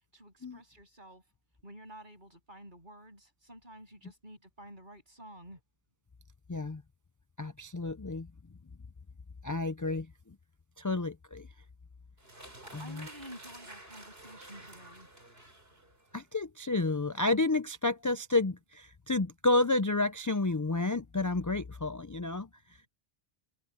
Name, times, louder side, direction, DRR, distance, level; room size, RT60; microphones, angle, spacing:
voice 1, 0.1-1.2 1.6-5.6 12.6-15.1, equal, 45° right, 8.3 m, -51 dB
voice 2, 6.5-6.8 7.4-8.3 9.4-10.4 10.8-11.5 12.7-13.1 16.1-22.5, left 2 dB, 30° left, 0.3 m, -30 dB
sound 1, 12.2-16.3, right 1 dB, 60° right, 5.7 m, -51 dB
open air
omnidirectional pair, 1.1 m